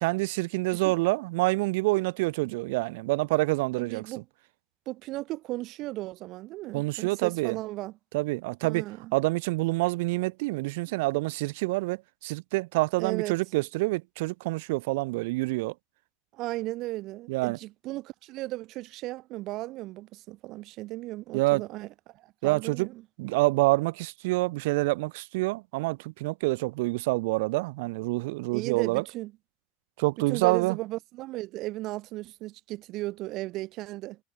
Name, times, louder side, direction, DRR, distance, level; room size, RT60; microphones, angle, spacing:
voice 1, 0.0-4.1 6.7-7.6 8.1-8.8 9.1-15.7 17.3-17.6 21.3-21.6 22.4-22.9 23.2-29.0 30.0-30.8, right 23 dB, 60° right, 0.9 m, -27 dB
voice 2, 3.7-4.2 4.9-7.9 8.6-9.1 13.0-13.4 16.3-23.0 28.5-29.3 30.3-34.2, right 18 dB, 35° right, 2.7 m, -35 dB
supercardioid pair, 175°, 0 cm